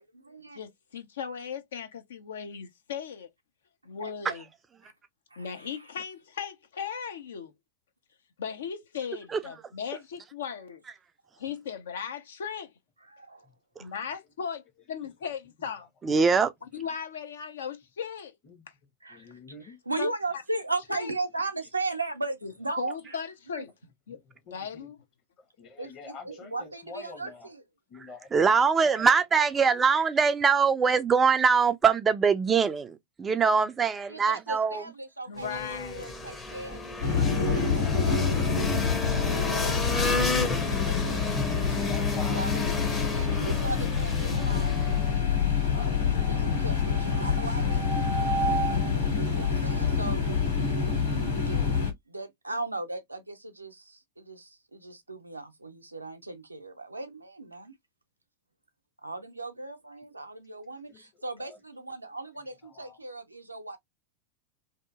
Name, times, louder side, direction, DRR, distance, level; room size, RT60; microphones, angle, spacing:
voice 1, 0.0-0.6 4.0-4.1 4.8-4.9 5.3-5.8 13.1-13.5 19.0-23.0 23.5-23.6 25.8-27.6 34.1-38.4 39.3-39.8 40.5-41.3 42.2-45.4 45.9-48.8 49.1-50.4 51.7-57.7 59.0-63.8, right 2 dB, 85° right, 0.5 m, -37 dB
voice 2, 0.5-3.3 3.8-4.5 5.4-7.5 8.4-10.8 11.4-12.7 13.8-15.9 16.7-18.4 20.0-20.1 20.9-21.1 22.4-22.5 22.8-23.7 24.1-24.2 24.5-25.0 35.3-36.1, left 7 dB, 65° left, 0.6 m, -37 dB
voice 3, 16.0-16.5 28.3-34.8, right 5 dB, 20° right, 0.3 m, -23 dB
voice 4, 19.1-19.8 24.5-24.9 25.6-27.5 27.9-28.5 28.8-29.1 41.7-42.7 60.9-61.1 61.5-61.6 62.6-63.0, left 3 dB, 35° left, 1.0 m, -45 dB
sound 1, 35.4-45.2, left 3 dB, 15° left, 0.7 m, -32 dB
sound 2, 37.0-51.9, left 5 dB, 80° left, 1.5 m, -26 dB
2.7 x 2.5 x 2.3 m
figure-of-eight pair, 90°, 0 cm